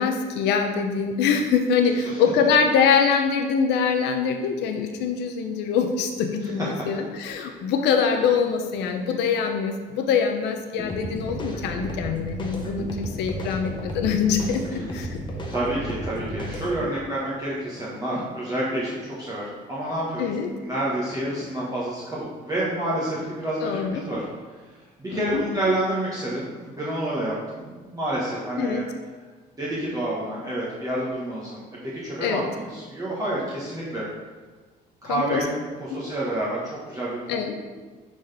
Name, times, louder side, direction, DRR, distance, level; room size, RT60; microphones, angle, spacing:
voice 1, 0.0-15.2 16.8-16.9 20.2-20.5 23.6-24.0 25.1-25.4 28.6-28.8 32.2-32.4 35.0-35.5 35.9-36.0 37.3-37.5, left 6 dB, 85° left, 5 dB, 0.8 m, -24 dB
sound 1, 10.8-16.8, equal, 25° left, 1.2 m, -33 dB
voice 2, 15.5-20.2 20.6-24.2 25.0-28.8 29.6-34.1 35.0-37.4, right 1 dB, 20° right, -8 dB, 1.5 m, -29 dB
9.9 x 4.2 x 3.5 m, 1.4 s
cardioid pair, 110°, 17 cm